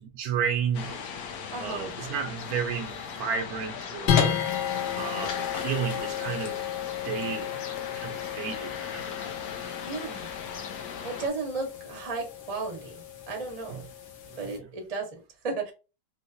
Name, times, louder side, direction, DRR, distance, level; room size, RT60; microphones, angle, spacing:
voice 1, 0.1-0.9 1.6-4.4 4.9-6.6 7.0-7.6 7.9-9.4 13.7-13.8 14.4-14.7, right 7 dB, 75° right, 0.8 m, -32 dB
sound 1, 0.7-11.3, left 6 dB, 65° left, 0.9 m, -38 dB
voice 2, 1.5-1.9 9.8-10.3 11.0-13.0 13.3-13.8 14.4-15.7, right 4 dB, 40° right, 0.5 m, -34 dB
sound 2, 4.1-14.6, left 9 dB, 85° left, 1.6 m, -32 dB
4.4 x 2.1 x 2.6 m
omnidirectional pair, 2.1 m